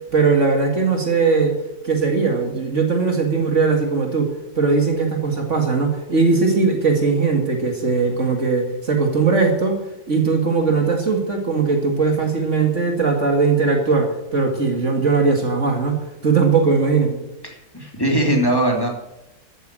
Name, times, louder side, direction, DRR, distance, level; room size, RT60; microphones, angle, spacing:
voice 1, 0.1-1.5 1.8-9.8 10.1-16.0 16.2-17.1, right 4 dB, 50° right, 3 dB, 2.3 m, -19 dB
voice 2, 17.4-18.9, right 1 dB, 15° left, 0 dB, 2.8 m, -20 dB
13.5 x 9.1 x 7.5 m, 0.91 s
omnidirectional pair, 1.7 m